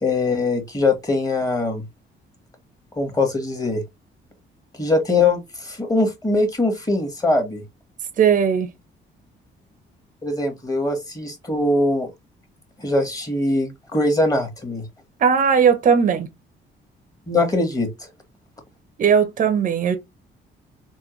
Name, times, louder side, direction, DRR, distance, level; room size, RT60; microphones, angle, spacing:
voice 1, 0.0-1.8 3.0-3.8 4.8-7.6 10.2-12.1 12.8-14.8 17.3-17.9, left 2 dB, 15° left, 1.2 m, -22 dB
voice 2, 8.2-8.7 15.2-16.3 19.0-20.0, right 7 dB, 40° right, 0.6 m, -17 dB
3.6 x 2.1 x 2.9 m
cardioid pair, 90°, 20 cm